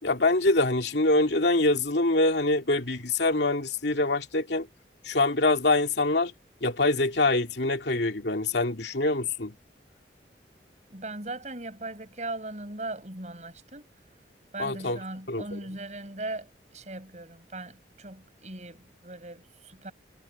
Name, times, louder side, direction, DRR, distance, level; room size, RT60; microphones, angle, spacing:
voice 1, 0.0-4.7 5.0-6.3 6.6-9.6 14.6-15.0 15.3-15.6, left 2 dB, 75° left, 2.4 m, -25 dB
voice 2, 10.9-13.9 14.5-19.9, right 2 dB, 40° right, 6.4 m, -39 dB
head